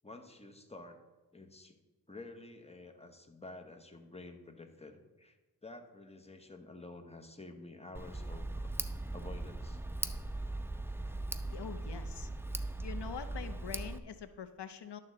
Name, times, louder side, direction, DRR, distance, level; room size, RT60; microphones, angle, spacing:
voice 1, 0.0-1.0 1.3-1.8 2.1-5.4 5.6-8.7 9.1-9.8, left 2 dB, 15° left, 5 dB, 1.0 m, -50 dB
Tick, 7.9-14.0, right 2 dB, 5° right, 0.4 m, -39 dB
voice 2, 11.5-12.3 12.8-15.0, left 7 dB, 85° left, 10 dB, 0.6 m, -44 dB
11.5 x 3.8 x 7.5 m, 1.2 s
wide cardioid pair, 65°, 40 cm